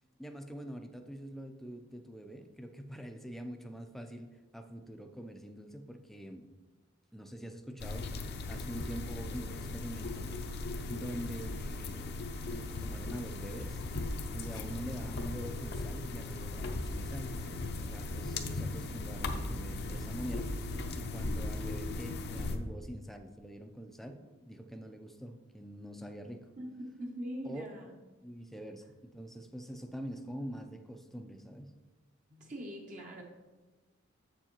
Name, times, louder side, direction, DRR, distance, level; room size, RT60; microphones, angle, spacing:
voice 1, 0.2-6.5 7.1-10.3 10.9-12.2 12.5-13.8 14.3-17.4 17.8-26.5 27.4-27.7 28.2-31.7, equal, ahead, 6 dB, 0.4 m, -45 dB
sound 1, 7.8-22.6, left 2 dB, 55° left, 0.6 m, -38 dB
voice 2, 26.6-27.9 32.3-33.2, equal, 40° right, 0 dB, 0.8 m, -42 dB
7.4 x 7.0 x 3.0 m, 1.2 s
head